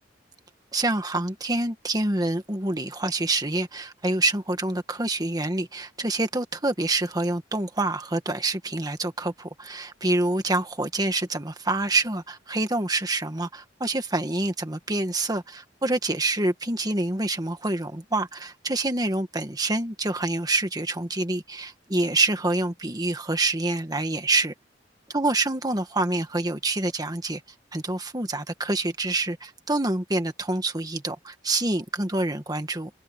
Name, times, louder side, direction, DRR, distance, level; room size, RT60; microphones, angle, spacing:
voice 1, 0.7-24.5 25.1-27.4 27.7-32.9, right 2 dB, 20° right, 1.7 m, -26 dB
head